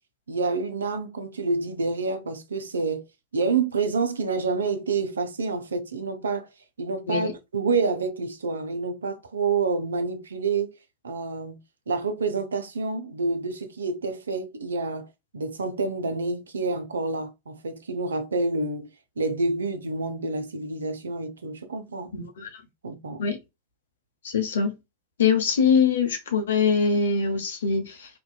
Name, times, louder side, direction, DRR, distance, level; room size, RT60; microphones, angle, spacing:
voice 1, 0.3-3.0 3.3-6.5 6.8-10.7 11.0-11.6 11.9-15.1 15.3-18.9 19.2-22.2 22.8-23.2, right 4 dB, 70° right, 0.4 m, -28 dB
voice 2, 22.1-22.5 23.2-23.4 24.2-24.7 25.2-28.1, left 5 dB, 65° left, 0.7 m, -23 dB
2.6 x 2.2 x 2.2 m
figure-of-eight pair, 90°, 0 cm